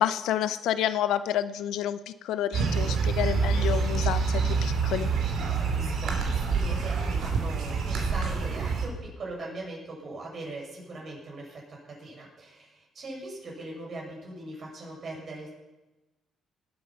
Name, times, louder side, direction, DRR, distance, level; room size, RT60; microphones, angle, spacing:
voice 1, 0.0-4.3 4.6-5.1, left 11 dB, 85° left, 13 dB, 0.7 m, -29 dB
sound 1, 2.5-8.9, right 5 dB, 75° right, 2.8 m, -27 dB
voice 2, 5.7-15.5, right 2 dB, 50° right, -1 dB, 6.4 m, -40 dB
19.0 x 8.6 x 5.9 m, 1.1 s
cardioid pair, 90°, 0 cm